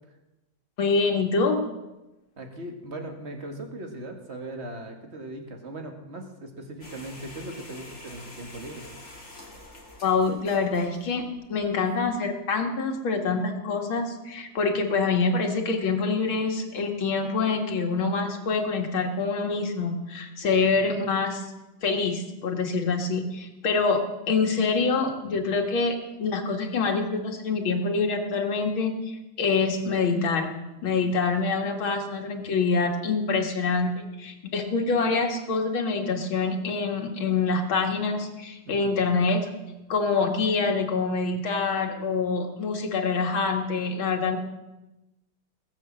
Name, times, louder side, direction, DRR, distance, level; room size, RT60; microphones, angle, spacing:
voice 1, 0.8-1.6 10.0-11.2 11.5-21.4 21.8-30.5 30.8-39.4 39.9-44.4, left 4 dB, 90° left, 3 dB, 2.6 m, -26 dB
voice 2, 2.4-8.9 20.8-21.0 38.6-39.1, right 1 dB, 35° right, 4 dB, 2.1 m, -39 dB
sound 1, 6.8-12.1, left 2 dB, 35° left, 2.9 m, -47 dB
20.5 x 7.4 x 7.5 m, 1.0 s
omnidirectional pair, 2.1 m